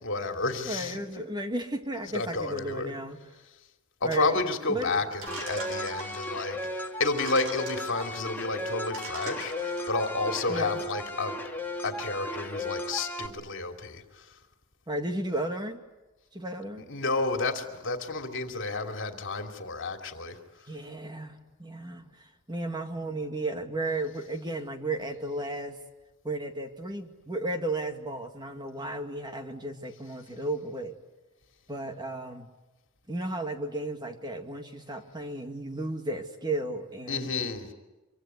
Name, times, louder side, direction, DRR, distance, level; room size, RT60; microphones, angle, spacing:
voice 1, 0.0-1.0 2.1-2.9 4.0-11.4 11.8-14.4 16.9-20.4 37.1-37.7, left 3 dB, 60° left, 5 dB, 2.8 m, -31 dB
voice 2, 0.7-3.3 4.0-4.4 4.7-5.1 10.5-10.8 14.9-15.8 16.3-16.9 20.7-25.8 26.2-31.0 31.7-32.5 33.1-37.2, right 2 dB, 20° right, 5 dB, 2.0 m, -34 dB
sound 1, 5.2-6.5 7.1-8.1 8.6-8.7 8.9-10.1, right 2 dB, 70° right, 6.5 m, -42 dB
sound 2, 5.3-13.3, left 1 dB, 10° left, 2.4 m, -35 dB
25.0 x 24.5 x 9.5 m, 1.1 s
head